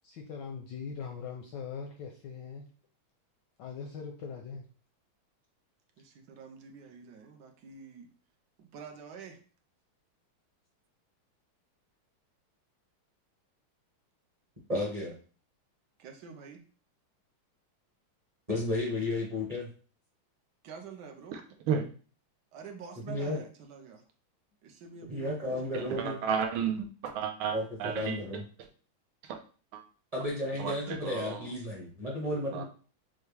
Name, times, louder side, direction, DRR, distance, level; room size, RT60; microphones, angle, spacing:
voice 1, 0.0-2.7 3.6-4.6, left 6 dB, 75° left, 2 dB, 1.1 m, -41 dB
voice 2, 6.0-8.1 8.6-9.4 16.0-16.6 20.6-21.4 22.5-24.0 24.6-26.3, right 6 dB, 70° right, 4 dB, 1.1 m, -48 dB
voice 3, 14.7-15.1 18.5-19.7 23.1-23.4 25.1-26.2 27.5-28.4 30.1-32.6, left 1 dB, 25° right, -4 dB, 0.8 m, -33 dB
voice 4, 25.7-28.2 29.3-29.4 29.7-29.8 30.6-31.5 32.5-32.6, right 7 dB, 85° right, 4 dB, 1.5 m, -33 dB
5.8 x 2.2 x 3.3 m, 0.39 s
omnidirectional pair, 2.3 m